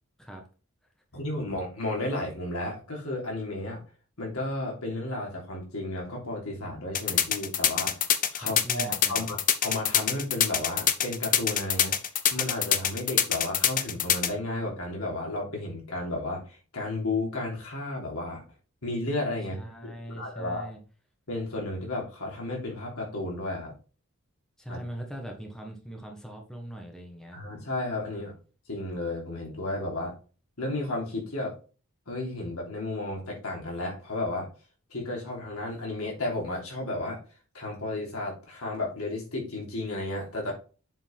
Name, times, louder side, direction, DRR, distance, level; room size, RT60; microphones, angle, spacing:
voice 1, 1.1-3.8 4.2-8.0 8.3-11.9 12.3-18.4 18.8-19.6 19.8-20.7 21.3-23.7 24.7-24.8 27.3-28.3 28.7-30.1 30.6-31.5 32.1-34.5 34.9-37.2 37.5-40.5, left 2 dB, 85° left, -1 dB, 3.4 m, -33 dB
sound 1, 6.9-14.3, left 9 dB, 40° left, 0.7 m, -24 dB
voice 2, 8.4-9.3 19.5-20.8 24.6-27.4, right 1 dB, 5° left, 1 dB, 1.4 m, -40 dB
7.3 x 5.4 x 3.6 m, 0.36 s
head